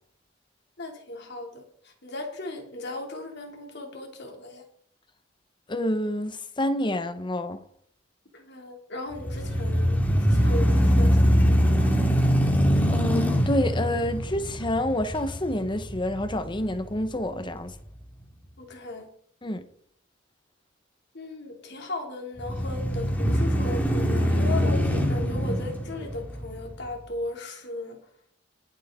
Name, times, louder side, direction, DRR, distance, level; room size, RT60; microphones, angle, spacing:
voice 1, 0.8-4.6 8.3-12.0 18.6-19.1 21.1-28.0, left 2 dB, 60° left, 2.7 m, -37 dB
voice 2, 5.7-7.6 12.9-17.7 19.4-19.6, left 1 dB, 25° left, 1.0 m, -28 dB
sound 1, 9.1-17.3 17.8-17.9 22.4-26.9, equal, 10° left, 1.9 m, -23 dB
20.0 x 7.9 x 3.7 m
head